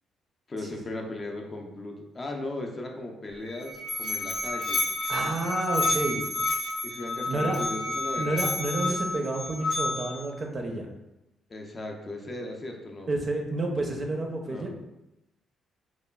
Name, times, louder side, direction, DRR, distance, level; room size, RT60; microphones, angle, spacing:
voice 1, 0.5-4.8 6.8-8.4 11.5-13.1 14.5-14.7, left 2 dB, 35° left, 2 dB, 0.4 m, -37 dB
Musical instrument, 3.3-10.3, left 2 dB, 90° left, 0.6 m, -30 dB
voice 2, 5.1-6.2 7.3-7.6 8.2-10.9 13.1-14.8, right 2 dB, 40° right, 2 dB, 0.5 m, -30 dB
3.1 x 2.2 x 2.2 m, 0.93 s
cardioid pair, 90°, 0 cm